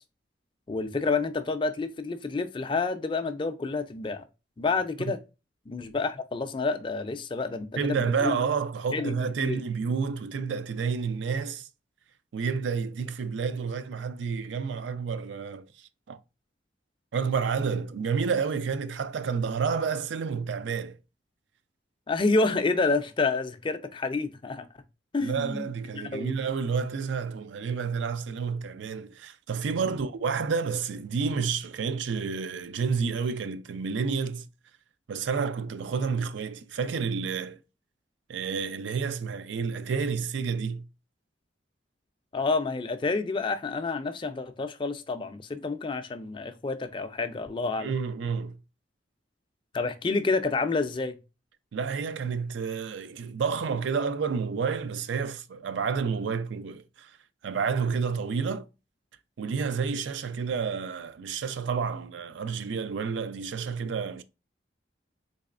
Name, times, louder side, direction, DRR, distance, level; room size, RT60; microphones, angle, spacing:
voice 1, 0.7-4.2 4.6-5.2 5.7-8.4 8.9-9.6 22.1-24.7 25.1-26.4 29.8-30.0 42.3-47.9 49.7-51.2, left 3 dB, 25° left, 0.4 m, -29 dB
voice 2, 7.8-11.7 12.3-16.2 17.1-21.0 25.2-34.5 35.1-37.6 38.3-40.9 47.8-48.6 51.7-57.2 57.4-58.7 59.4-64.2, right 5 dB, 80° right, 0.4 m, -30 dB
4.1 x 2.9 x 2.4 m
head